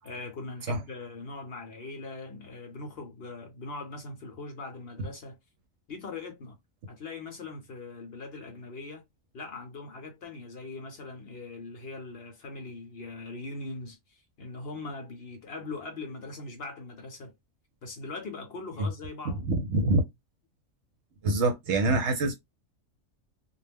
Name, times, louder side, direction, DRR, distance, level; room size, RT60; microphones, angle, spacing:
voice 1, 0.0-5.4 5.9-6.6 6.9-9.0 9.3-17.3 17.8-19.5, left 3 dB, 55° left, 0.8 m, -41 dB
voice 2, 19.5-20.0 21.2-22.4, right 2 dB, 65° right, 0.8 m, -25 dB
2.3 x 2.1 x 3.3 m
omnidirectional pair, 1.4 m